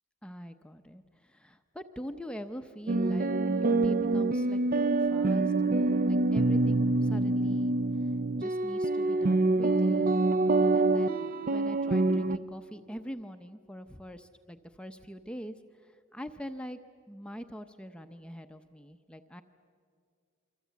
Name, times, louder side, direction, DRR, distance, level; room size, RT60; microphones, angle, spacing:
voice 1, 0.2-5.5 6.1-8.1 8.4-10.2 10.7-15.6 15.8-16.8 17.1-19.4, equal, 5° left, 7 dB, 0.7 m, -44 dB
sound 1, 2.9-12.4, right 2 dB, 45° right, 0.6 m, -26 dB
28.0 x 24.5 x 8.3 m, 2.2 s
head